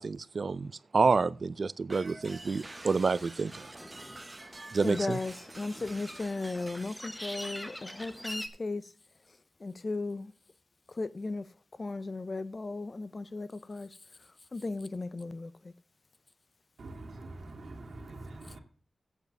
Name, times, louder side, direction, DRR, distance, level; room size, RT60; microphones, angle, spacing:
voice 1, 0.0-3.7 4.7-5.2, right 4 dB, 50° right, 0.4 m, -28 dB
sound 1, 1.9-7.1, right 2 dB, 25° right, 0.7 m, -48 dB
sound 2, 2.4-8.5, equal, 5° left, 1.0 m, -45 dB
voice 2, 4.8-8.9 9.6-10.3 10.9-11.5 11.8-13.9 14.5-15.5, left 3 dB, 35° left, 0.5 m, -36 dB
voice 3, 16.8-18.6, right 2 dB, 70° right, 2.1 m, -44 dB
8.2 x 7.2 x 6.6 m
wide cardioid pair, 140°, 0 cm